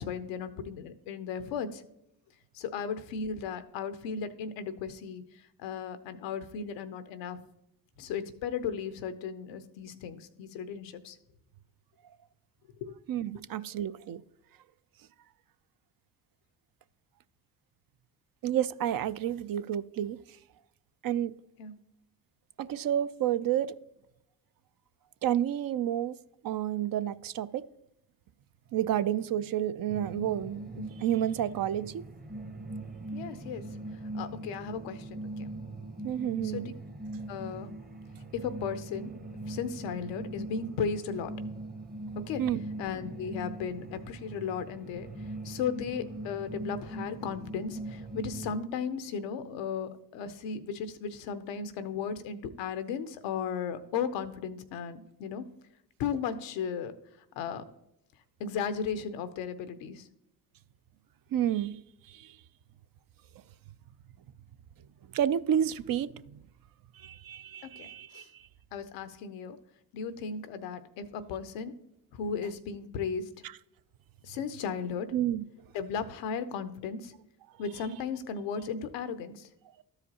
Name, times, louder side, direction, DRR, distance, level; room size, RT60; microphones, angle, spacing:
voice 1, 0.0-1.8 2.5-5.2 5.6-7.4 8.0-11.2 12.8-12.9 21.6-21.7 33.1-33.6 34.1-35.5 36.5-36.7 37.3-37.7 38.3-39.1 39.5-41.3 42.2-42.4 42.8-45.1 45.4-55.4 56.0-56.9 57.4-57.6 58.4-60.1 67.8-67.9 68.1-68.3 68.7-69.6 69.9-71.7 72.1-73.5 74.2-75.1 75.7-77.1 77.6-79.5, left 6 dB, 85° left, 0.7 m, -35 dB
voice 2, 13.1-14.2 18.4-20.2 21.0-21.3 22.6-23.8 25.2-26.2 26.4-27.7 28.7-32.0 36.0-36.7 42.4-42.6 61.3-61.8 62.1-62.4 65.1-66.4 67.0-68.2 75.1-75.4, right 10 dB, 55° right, 0.5 m, -30 dB
sound 1, 29.9-48.5, right 2 dB, 20° right, 0.9 m, -41 dB
12.5 x 4.9 x 2.9 m
hypercardioid pair, 45°, 43 cm